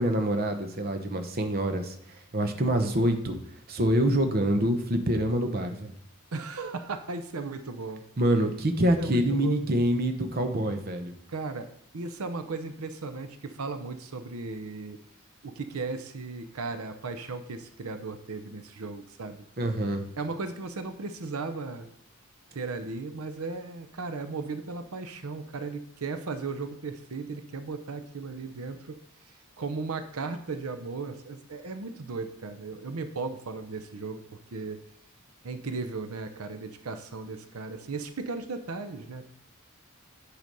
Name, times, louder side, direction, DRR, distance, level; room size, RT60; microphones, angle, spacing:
voice 1, 0.0-1.9 2.3-3.4 3.7-5.9 8.2-11.1 19.6-20.1, right 1 dB, 45° right, 6 dB, 0.9 m, -26 dB
voice 2, 6.3-8.0 9.0-9.6 11.3-11.7 11.9-15.0 15.4-19.4 20.2-21.9 22.5-29.0 29.3-34.2 34.5-34.8 35.4-39.3, right 3 dB, 90° right, 9 dB, 0.7 m, -36 dB
9.2 x 5.0 x 5.4 m, 0.74 s
head